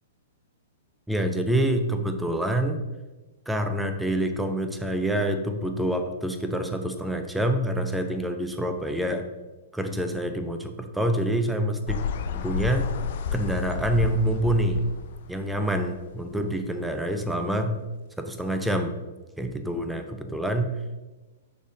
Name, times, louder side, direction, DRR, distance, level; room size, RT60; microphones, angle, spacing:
voice 1, 1.1-2.8 3.5-9.3 9.7-12.0 12.3-12.9 13.3-14.9 15.3-17.8 18.2-18.9 19.4-20.8, right 1 dB, 5° right, 6 dB, 0.7 m, -26 dB
sound 1, 11.9-16.2, left 7 dB, 55° left, 0.5 m, -31 dB
6.4 x 5.0 x 4.9 m, 1.2 s
figure-of-eight pair, 110°, 0 cm